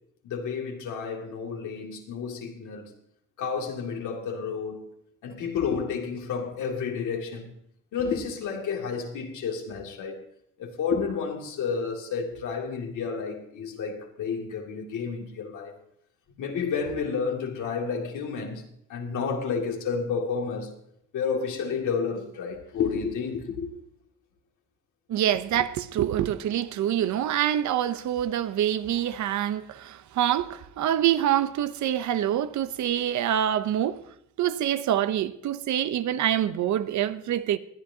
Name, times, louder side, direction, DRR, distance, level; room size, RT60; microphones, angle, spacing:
voice 1, 0.2-2.9 3.4-4.8 5.2-7.5 7.9-10.2 10.6-15.7 16.4-20.7 21.1-23.7, left 5 dB, 80° left, 2.4 m, -31 dB
voice 2, 25.1-34.0 34.4-37.6, right 11 dB, 70° right, 0.8 m, -26 dB
20.0 x 11.0 x 2.8 m
cardioid pair, 90°, 30 cm